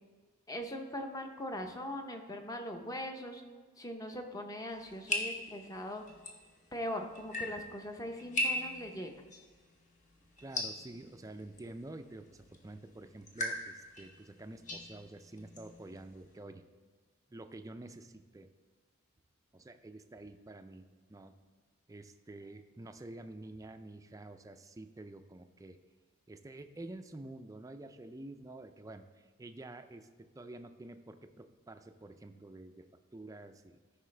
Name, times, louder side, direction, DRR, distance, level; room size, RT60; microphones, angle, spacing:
voice 1, 0.5-3.4 3.8-6.0 6.7-9.3, left 1 dB, 15° left, 4 dB, 0.7 m, -41 dB
sound 1, 4.7-16.4, left 1 dB, 35° left, 1.2 m, -41 dB
voice 2, 10.4-16.6 17.3-18.5 19.5-21.3 21.9-25.8 26.3-33.8, right 2 dB, 15° right, 8 dB, 0.4 m, -49 dB
13.5 x 5.6 x 3.3 m, 1.5 s
head